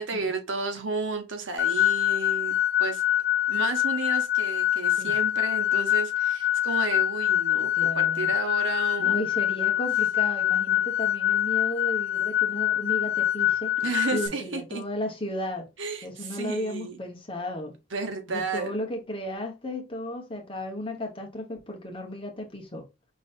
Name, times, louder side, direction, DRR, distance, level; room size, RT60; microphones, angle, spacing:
voice 1, 0.0-3.0 3.5-9.3 13.8-14.8 15.8-17.0 17.9-18.7, right 4 dB, 85° right, 1.0 m, -32 dB
sound 1, 1.6-14.3, left 12 dB, 70° left, 0.4 m, -25 dB
voice 2, 7.7-8.3 9.0-13.7 14.1-15.7 16.0-17.7 18.3-22.9, left 1 dB, 25° left, 1.1 m, -34 dB
5.3 x 3.1 x 2.5 m
head